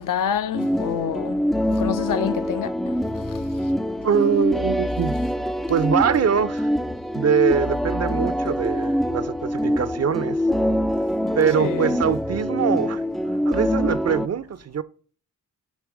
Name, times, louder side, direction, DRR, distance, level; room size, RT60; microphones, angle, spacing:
voice 1, 0.0-1.3 1.8-2.7 11.6-12.0, left 9 dB, 65° left, 0.6 m, -26 dB
sound 1, 0.5-14.3, equal, ahead, 0.3 m, -24 dB
voice 2, 4.0-5.2 5.7-6.7 7.1-10.4 11.3-13.0 13.5-14.8, right 7 dB, 45° right, 0.6 m, -23 dB
7.4 x 3.0 x 4.7 m
cardioid pair, 60°, 34 cm